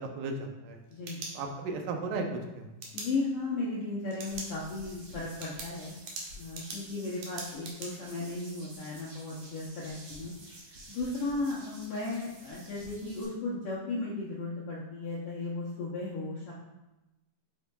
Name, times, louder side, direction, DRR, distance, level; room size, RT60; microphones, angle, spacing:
voice 1, 0.0-0.8 1.3-2.7, right 3 dB, 85° right, 3 dB, 2.4 m, -35 dB
sound 1, 0.7-1.9 2.8-3.1 4.1-4.5 4.9-5.0 5.4-7.9, right 3 dB, 65° right, 2.2 m, -41 dB
voice 2, 2.9-5.9 6.4-10.3 10.7-16.5, left 3 dB, 75° left, -6 dB, 1.4 m, -35 dB
sound 2, 4.2-13.2, right 1 dB, 50° right, 2.8 m, -51 dB
8.2 x 5.6 x 2.3 m, 1.0 s
omnidirectional pair, 3.7 m